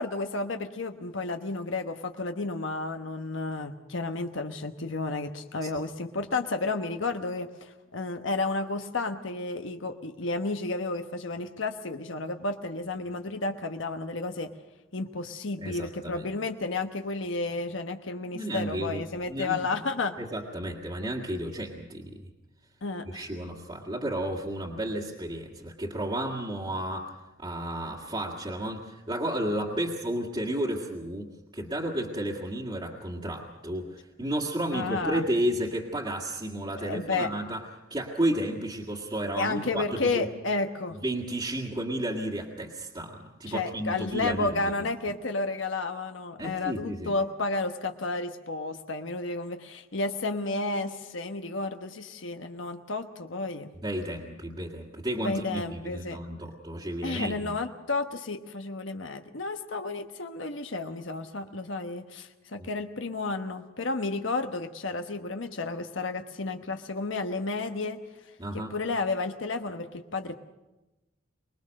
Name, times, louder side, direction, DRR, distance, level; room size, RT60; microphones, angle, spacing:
voice 1, 0.0-14.5 14.9-20.2 22.8-23.2 34.7-35.2 36.8-37.3 39.4-41.0 43.5-53.7 55.2-56.2 57.0-68.0 68.5-70.3, left 3 dB, 70° left, 6 dB, 1.2 m, -32 dB
voice 2, 15.6-16.3 18.3-19.6 20.2-22.3 23.1-37.7 37.9-40.3 41.0-44.7 46.4-47.1 53.8-57.6 62.6-62.7 68.4-68.7, right 1 dB, 25° right, -2 dB, 1.9 m, -32 dB
24.5 x 20.5 x 6.5 m, 1.0 s
head